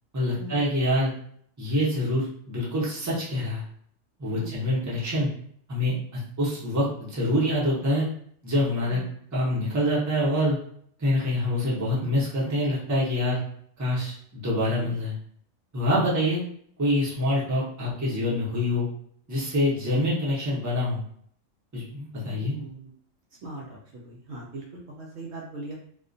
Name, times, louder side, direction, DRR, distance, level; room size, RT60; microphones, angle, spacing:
voice 1, 0.1-1.1 1.6-3.6 4.2-5.3 5.7-8.1 8.4-9.0 9.3-10.6 11.0-13.4 13.8-15.1 15.7-16.4 16.8-18.9 19.3-21.0 21.7-22.6, left 1 dB, 20° right, -7 dB, 0.6 m, -25 dB
voice 2, 4.3-4.6 8.9-9.1 16.0-16.2 22.2-22.9 23.4-25.8, right 1 dB, 65° right, -3 dB, 0.8 m, -40 dB
2.3 x 2.1 x 2.5 m, 0.63 s
omnidirectional pair, 1.3 m